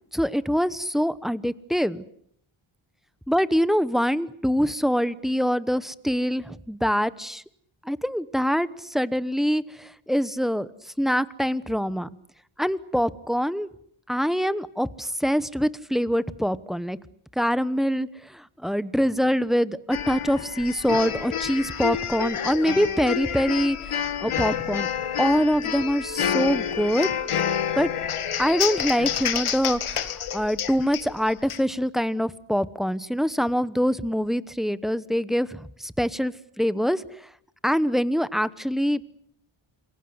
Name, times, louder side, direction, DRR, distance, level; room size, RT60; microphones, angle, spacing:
voice 1, 0.1-2.0 3.3-7.4 7.8-12.1 12.6-13.7 14.1-17.0 17.4-24.9 25.2-27.1 27.8-27.9 28.4-37.3 37.6-39.0, equal, ahead, 15 dB, 1.0 m, -24 dB
sound 1, 19.9-31.6, left 8 dB, 80° left, 1.8 m, -28 dB
28.0 x 22.0 x 7.9 m, 0.66 s
wide cardioid pair, 100°, 50 cm